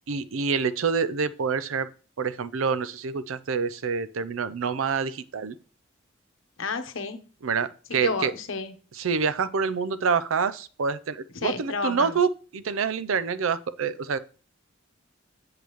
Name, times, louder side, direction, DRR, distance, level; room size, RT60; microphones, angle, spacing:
voice 1, 0.1-1.9 2.2-5.5 7.4-8.3 9.0-14.2, right 5 dB, 90° right, 14 dB, 0.5 m, -27 dB
voice 2, 6.6-7.2 8.0-8.8 11.3-12.2, left 4 dB, 75° left, 8 dB, 1.0 m, -31 dB
8.2 x 6.6 x 3.0 m, 0.37 s
head